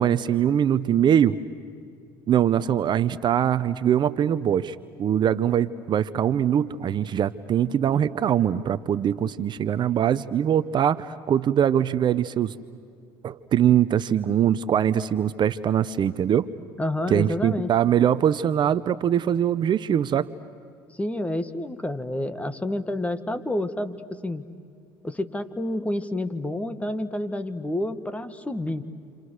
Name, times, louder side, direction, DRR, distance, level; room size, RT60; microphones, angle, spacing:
voice 1, 0.0-1.4 2.3-12.5 13.2-16.5 17.1-20.3, right 9 dB, 45° right, 15 dB, 0.8 m, -22 dB
voice 2, 16.8-17.7 20.9-23.9 24.2-24.4 25.0-28.8, left 1 dB, 10° left, 12 dB, 1.8 m, -29 dB
29.5 x 28.0 x 6.5 m, 2.4 s
hypercardioid pair, 75°, 11 cm